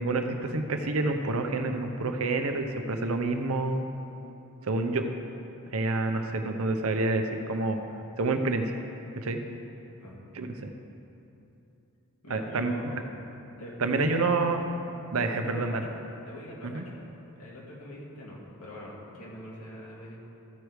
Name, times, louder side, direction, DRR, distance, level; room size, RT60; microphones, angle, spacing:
voice 1, 0.0-3.9 4.6-5.1 5.7-7.8 8.2-8.8 9.2-9.4 10.3-10.7 12.3-13.0 13.8-14.6 15.1-15.8 16.6-16.8, right 3 dB, 75° right, 6 dB, 0.7 m, -28 dB
voice 2, 12.2-12.9 13.6-14.3 15.1-17.1 17.4-20.2, left 1 dB, 90° left, -4 dB, 2.2 m, -43 dB
14.5 x 5.0 x 4.7 m, 2.9 s
head